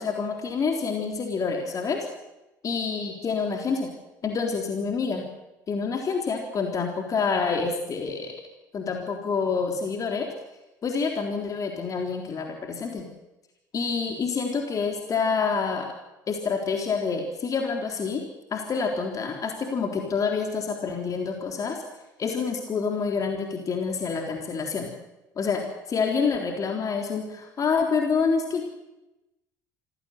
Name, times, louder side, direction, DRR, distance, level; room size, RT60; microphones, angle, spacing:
voice 1, 0.0-2.1 2.6-3.9 4.2-5.3 5.7-8.3 8.7-10.3 10.8-13.1 13.7-15.9 16.3-18.2 18.5-21.8 22.2-24.9 25.4-28.6, left 5 dB, 35° left, 3 dB, 3.8 m, -27 dB
26.0 x 16.5 x 8.1 m, 0.97 s
figure-of-eight pair, 60°, 10 cm